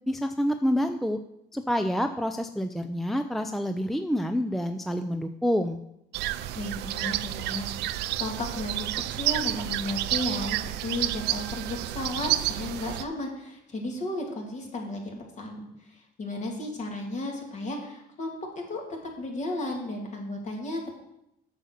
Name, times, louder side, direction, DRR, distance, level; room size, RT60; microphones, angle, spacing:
voice 1, 0.1-1.2 1.5-5.8, equal, ahead, 7 dB, 0.4 m, -27 dB
sound 1, 6.1-13.0, right 14 dB, 85° right, 0.5 m, -30 dB
voice 2, 6.5-20.9, left 1 dB, 45° left, 1 dB, 2.6 m, -34 dB
7.8 x 6.5 x 6.6 m, 0.82 s
cardioid pair, 110°, 17 cm